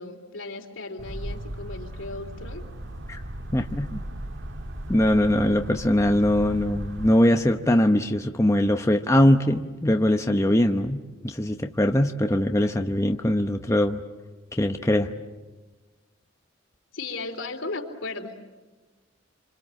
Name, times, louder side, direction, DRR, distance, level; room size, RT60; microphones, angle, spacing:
voice 1, 0.0-2.6 16.9-18.4, left 3 dB, 75° left, 4 dB, 3.2 m, -36 dB
sound 1, 1.0-7.2, right 1 dB, 65° right, 1.7 m, -36 dB
voice 2, 3.5-4.0 4.9-14.0 14.6-15.1, left 1 dB, 15° left, 5 dB, 0.9 m, -22 dB
28.0 x 26.0 x 7.7 m, 1.3 s
head